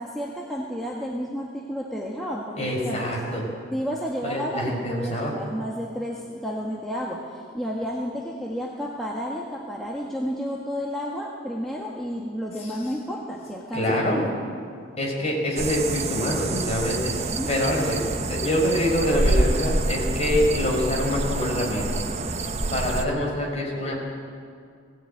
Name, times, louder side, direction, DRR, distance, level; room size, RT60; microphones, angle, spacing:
voice 1, 0.0-3.2 3.7-14.2 17.2-17.5, equal, ahead, -4 dB, 1.6 m, -31 dB
voice 2, 2.6-3.4 4.2-5.3 13.7-14.3 15.0-18.0 18.3-22.0 22.7-24.0, left 1 dB, 30° left, -1 dB, 5.0 m, -25 dB
sound 1, 15.6-23.0, right 2 dB, 35° right, 0.9 m, -27 dB
18.5 x 17.5 x 8.9 m, 2.2 s
head